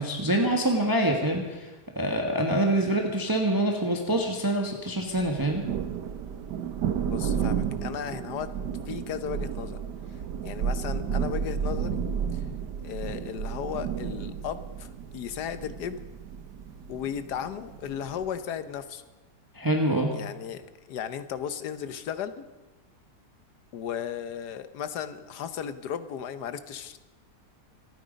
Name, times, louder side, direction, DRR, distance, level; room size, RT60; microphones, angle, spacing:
voice 1, 0.0-5.6 19.5-20.1, right 1 dB, 15° right, 2 dB, 1.3 m, -25 dB
Thunder, 5.2-18.4, right 7 dB, 90° right, 1.5 m, -32 dB
voice 2, 7.0-8.5 8.9-9.8 10.1-12.0 12.3-12.4 12.8-16.0 16.9-19.0 20.1-22.5 23.7-27.0, left 8 dB, 75° left, 12 dB, 1.5 m, -35 dB
26.0 x 9.5 x 5.2 m, 1.1 s
omnidirectional pair, 1.8 m